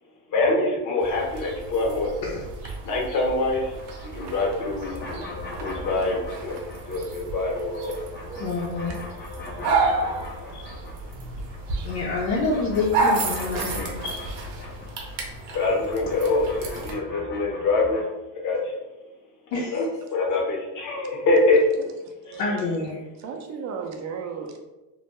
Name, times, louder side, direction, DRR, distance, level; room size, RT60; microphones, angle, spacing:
voice 1, 0.3-2.4 2.8-3.8 4.0-5.2 5.5-6.5 6.9-7.9 8.9-9.0 10.5-10.6 15.5-18.0 18.3-18.7 19.7-19.8 20.1-21.6 22.3-22.4, left 3 dB, 40° left, -1 dB, 0.8 m, -25 dB
sound 1, 1.0-16.9, right 3 dB, 80° right, 0.7 m, -31 dB
sound 2, 3.6-7.2 7.5-11.2 11.5-18.0, left 2 dB, 25° left, 0.5 m, -40 dB
voice 2, 8.4-9.2 11.8-14.3 19.5-19.9 22.4-23.0, left 3 dB, 80° left, -4 dB, 0.6 m, -27 dB
voice 3, 22.2-22.8 23.2-24.6, right 6 dB, 40° right, 3 dB, 0.5 m, -35 dB
2.2 x 2.1 x 2.9 m, 1.1 s
supercardioid pair, 100°, 47 cm